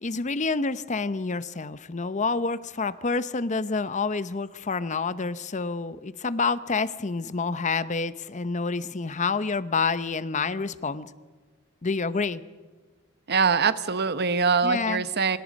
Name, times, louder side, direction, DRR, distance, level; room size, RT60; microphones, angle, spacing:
voice 1, 0.0-11.1 11.8-12.4 14.6-15.0, left 4 dB, 35° left, 15 dB, 0.8 m, -28 dB
voice 2, 13.3-15.4, right 5 dB, 50° right, 13 dB, 1.1 m, -23 dB
29.0 x 25.5 x 5.3 m, 1.4 s
head